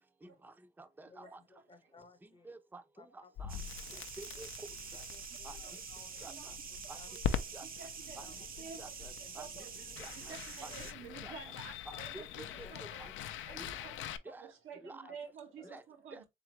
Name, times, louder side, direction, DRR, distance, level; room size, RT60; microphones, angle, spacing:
voice 1, 0.4-1.4 2.5-3.6 4.2-4.7 4.9-5.0 5.4-5.6 6.2-6.5 6.9-7.0 7.5-7.7 8.2-8.3 8.8-9.5 10.0-10.1 10.6-10.7 11.2-11.3 11.9-12.7 13.0-13.1 13.6-13.7 14.3-14.5 14.8-15.1 15.6-15.8 16.1-16.2, right 2 dB, 10° right, 0.5 m, -50 dB
voice 2, 1.1-2.5 3.0-3.3 3.9-4.1 4.3-4.5 5.1-6.1 6.7-7.1 8.2-8.7 9.2-9.3 10.2-10.3 10.7-10.8 11.8-12.0 12.6-12.7 13.2-13.6 14.7-15.2 15.5-15.8, left 4 dB, 25° left, 0.7 m, -59 dB
Crackle, 3.4-14.2, left 9 dB, 75° left, 0.4 m, -43 dB
sound 1, 3.5-10.9, right 6 dB, 45° right, 0.8 m, -47 dB
voice 3, 5.4-5.8 6.1-6.5 7.1-7.2 7.6-9.7 10.2-12.4 12.7-13.1 13.5-14.1 14.4-16.2, right 6 dB, 90° right, 1.1 m, -51 dB
3.7 x 3.4 x 3.0 m
cardioid pair, 90°, 20 cm